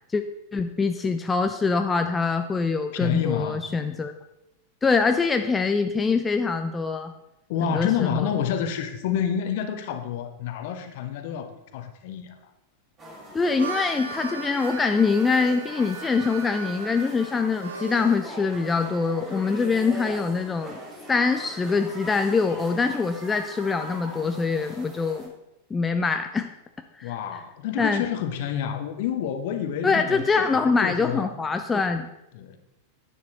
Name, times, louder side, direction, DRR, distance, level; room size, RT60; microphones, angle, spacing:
voice 1, 0.5-4.1 4.8-7.1 7.7-8.3 13.3-20.7 21.1-25.3 25.7-26.5 27.0-27.1 27.8-28.0 29.8-32.1, left 4 dB, 15° left, 7 dB, 0.6 m, -24 dB
voice 2, 2.9-3.6 7.5-12.5 27.0-31.3 32.3-32.6, left 9 dB, 50° left, 8 dB, 1.2 m, -29 dB
sound 1, 13.0-25.3, equal, 25° right, 4.5 m, -41 dB
Harmonica, 13.3-18.2, right 4 dB, 70° right, 1.3 m, -37 dB
10.5 x 9.4 x 4.2 m, 0.88 s
figure-of-eight pair, 90°, 0 cm